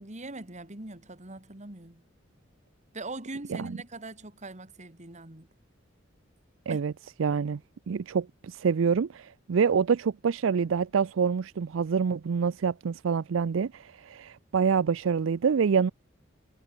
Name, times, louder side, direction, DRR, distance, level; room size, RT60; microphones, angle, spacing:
voice 1, 0.0-2.0 2.9-5.5 6.7-6.8, right 2 dB, 35° right, 2.9 m, -41 dB
voice 2, 7.2-7.6 7.9-15.9, right 6 dB, 80° right, 0.4 m, -26 dB
head